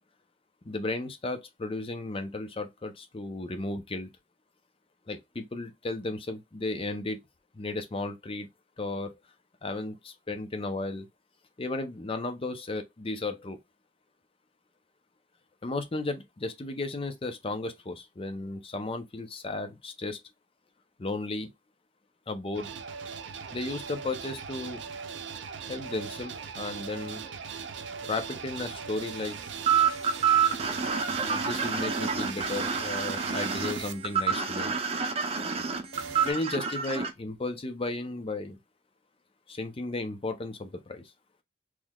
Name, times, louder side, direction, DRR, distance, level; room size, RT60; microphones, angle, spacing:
voice 1, 0.6-4.1 5.1-7.2 7.5-8.5 8.8-9.1 9.6-11.1 11.6-13.6 15.6-20.2 21.0-21.5 22.3-22.7 23.5-24.8 25.7-27.2 28.0-29.4 31.1-34.7 36.2-38.6 39.5-41.1, left 2 dB, 30° left, 0.6 m, -34 dB
sound 1, 22.5-33.9 35.9-36.3, right 6 dB, 75° right, 0.6 m, -39 dB
sound 2, 29.7-37.1, right 6 dB, 35° right, 0.7 m, -27 dB
3.7 x 3.1 x 2.3 m
head